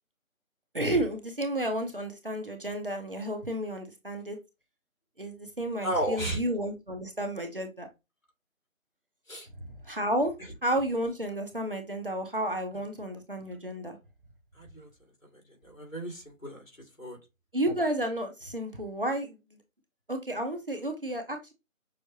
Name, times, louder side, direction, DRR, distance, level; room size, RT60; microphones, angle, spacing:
voice 1, 0.7-4.4 5.2-7.9 9.8-10.3 10.6-14.0 17.5-19.6 20.1-21.5, right 1 dB, 40° right, 5 dB, 0.8 m, -31 dB
voice 2, 5.8-6.4 9.3-9.5 14.5-14.9 15.6-16.7 17.0-17.2, right 1 dB, 70° left, 0 dB, 2.4 m, -33 dB
6.2 x 2.1 x 2.8 m, 0.24 s
figure-of-eight pair, 165°, 41 cm